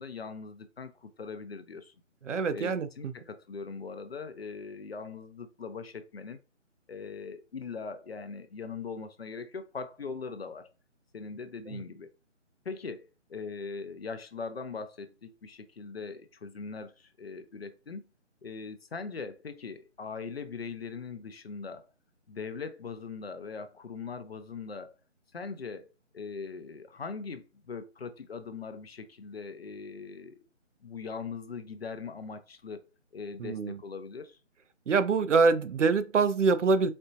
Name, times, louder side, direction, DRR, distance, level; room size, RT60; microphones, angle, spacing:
voice 1, 0.0-1.9 2.5-6.4 6.9-10.7 11.1-12.1 12.6-18.0 18.4-21.9 22.3-24.9 25.3-30.4 30.8-32.8 33.1-34.4, left 5 dB, 55° left, 0.5 m, -41 dB
voice 2, 2.2-3.1 33.4-33.8 34.9-36.9, right 4 dB, 75° right, 0.6 m, -25 dB
4.3 x 2.1 x 2.6 m
figure-of-eight pair, 165°, 38 cm